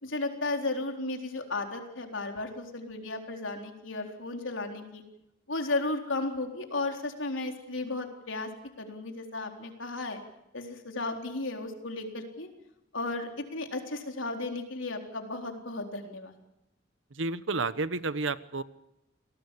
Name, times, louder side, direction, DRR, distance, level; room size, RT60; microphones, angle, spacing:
voice 1, 0.0-5.0 5.5-8.5 8.8-10.2 10.5-12.5 12.9-16.4, left 2 dB, 85° left, 3 dB, 4.0 m, -34 dB
voice 2, 17.1-18.6, right 3 dB, 80° right, 15 dB, 1.1 m, -31 dB
28.5 x 18.5 x 8.5 m, 0.89 s
head